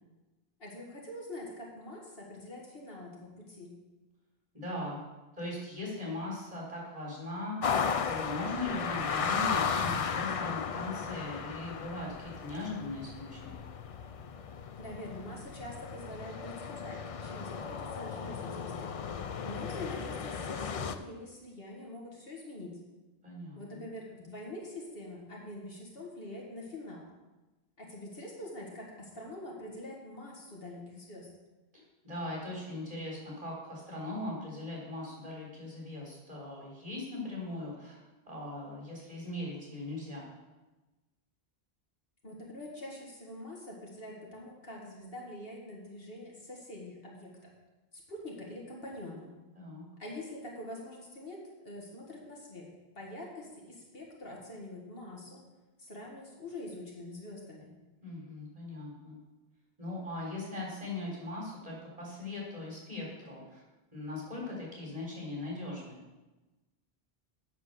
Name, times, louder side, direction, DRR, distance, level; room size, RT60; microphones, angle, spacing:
voice 1, 0.6-3.7 14.8-19.0 19.4-22.8 23.6-27.0 27.8-31.3 42.2-47.5 48.1-49.3 50.0-52.7 53.0-55.4 55.8-57.7, left 1 dB, 65° left, -2 dB, 2.2 m, -45 dB
voice 2, 4.5-5.0 5.4-13.6 23.2-23.8 32.0-38.0 38.3-40.2 49.5-49.8 58.0-59.2 59.8-63.6 63.9-66.0, left 2 dB, 35° right, -4 dB, 4.2 m, -39 dB
sound 1, 7.6-20.9, left 6 dB, 50° left, 0.4 m, -35 dB
8.1 x 6.8 x 6.8 m, 1.1 s
omnidirectional pair, 1.1 m